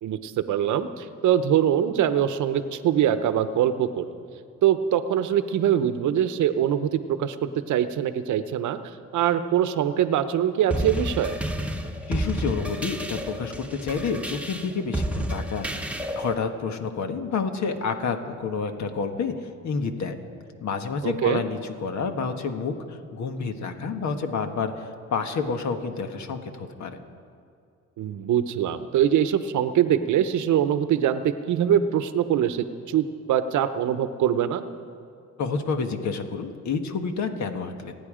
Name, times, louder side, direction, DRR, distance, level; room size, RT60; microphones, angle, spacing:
voice 1, 0.0-4.1 4.6-8.8 9.1-11.4 21.0-21.4 28.0-34.6, right 10 dB, 75° right, 11 dB, 0.9 m, -23 dB
sound 1, 10.7-16.4, right 1 dB, 5° right, 1.1 m, -30 dB
voice 2, 12.1-20.2 20.6-27.0 35.4-37.9, left 5 dB, 65° left, 6 dB, 1.5 m, -29 dB
28.5 x 9.5 x 5.1 m, 2.4 s
cardioid pair, 90°, 30 cm